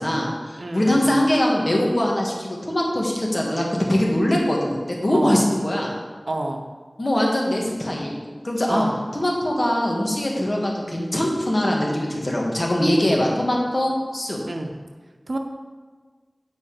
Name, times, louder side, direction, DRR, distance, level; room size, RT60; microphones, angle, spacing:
voice 1, 0.0-5.9 7.0-8.2 8.4-8.9 9.1-14.4, left 1 dB, 45° left, -2 dB, 1.8 m, -22 dB
voice 2, 0.6-1.2 5.1-5.5 6.3-6.7 8.7-8.9 14.5-14.7 15.3-15.4, right 2 dB, 75° right, 4 dB, 0.9 m, -28 dB
8.2 x 5.4 x 5.0 m, 1.4 s
wide cardioid pair, 40°, 0 cm